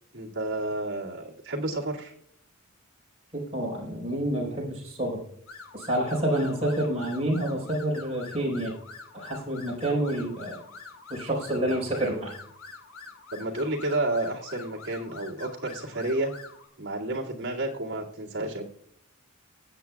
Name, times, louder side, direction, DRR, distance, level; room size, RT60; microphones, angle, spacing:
voice 1, 0.1-2.1 13.3-16.3 16.8-18.7, right 2 dB, 60° right, -3 dB, 2.2 m, -31 dB
voice 2, 3.3-5.2 5.7-8.7 9.1-10.6 11.1-12.3, right 1 dB, 30° right, -3 dB, 4.4 m, -28 dB
sound 1, 5.5-16.7, left 4 dB, 90° left, 2.5 m, -46 dB
23.5 x 8.2 x 2.3 m, 0.65 s
head